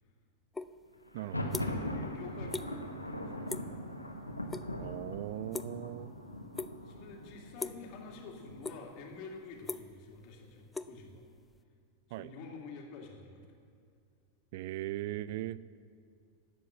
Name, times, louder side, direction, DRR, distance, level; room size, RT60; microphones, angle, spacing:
sound 1, 0.5-0.7 1.1-1.9 2.2-2.7 3.0-3.2 3.5-3.8 4.1-4.7 4.9-6.1 6.5-7.0 7.6-7.9 8.3-9.0 9.3-11.6, left 3 dB, 10° left, 0.4 m, -40 dB
Thunder, 1.1-8.8, equal, 85° left, 1.2 m, -40 dB
voice 1, 1.1-1.5 4.8-6.1 12.1-12.3 14.5-15.6, right 15 dB, 50° right, 18 dB, 0.3 m, -39 dB
voice 2, 1.8-3.6 5.3-6.4 6.8-11.2 12.2-13.6 15.1-15.7, left 4 dB, 45° left, 1 dB, 2.3 m, -49 dB
12.0 x 8.1 x 7.9 m, 2.3 s
figure-of-eight pair, 90°, 0 cm